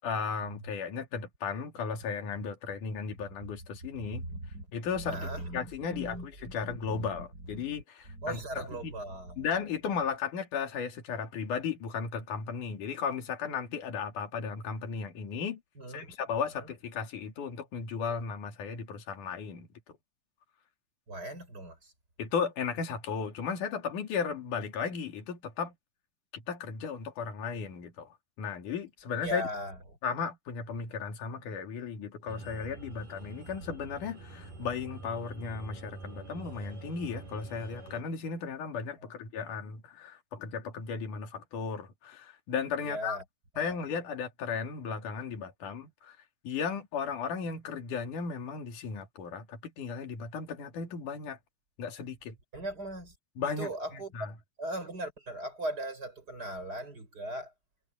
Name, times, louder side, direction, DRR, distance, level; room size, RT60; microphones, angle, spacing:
voice 1, 0.0-4.2 4.7-8.9 9.4-15.6 15.9-19.7 22.2-25.7 26.3-29.5 30.0-43.2 43.6-46.2 46.4-51.4 51.8-52.4 53.4-54.3, left 6 dB, 70° left, 4.1 m, -35 dB
voice 2, 4.1-4.7 5.0-5.6 5.9-7.2 7.5-7.8 8.1-9.5 15.8-16.2 16.6-16.7 21.1-21.9 29.2-29.8 42.8-43.2 43.6-43.8 52.5-53.1 53.6-54.1 54.6-57.5, right 1 dB, 25° right, 6.6 m, -38 dB
sound 1, 32.3-38.0, right 2 dB, 80° right, 7.5 m, -46 dB
omnidirectional pair, 3.8 m